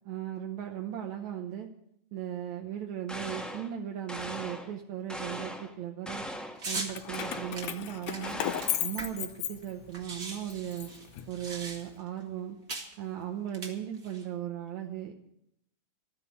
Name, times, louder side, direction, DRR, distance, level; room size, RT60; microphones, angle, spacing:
voice 1, 0.1-1.7 2.1-6.3 6.7-8.4 8.8-10.9 11.3-12.6 13.0-15.1, right 10 dB, 75° right, 3 dB, 2.3 m, -37 dB
sound 1, 3.1-3.7 4.1-4.7 5.1-5.7 6.0-6.6 7.1-7.6 8.2-8.9, equal, ahead, 1.0 m, -39 dB
sound 2, 6.6-6.9 7.5-9.4 9.6-9.7 9.9-12.1 12.7-12.9 13.5-14.2, right 3 dB, 35° right, 1.9 m, -39 dB
Keys jangling, 6.9-10.1 10.5-11.8, left 11 dB, 75° left, 1.9 m, -35 dB
13.0 x 9.8 x 8.2 m, 0.75 s
omnidirectional pair, 3.4 m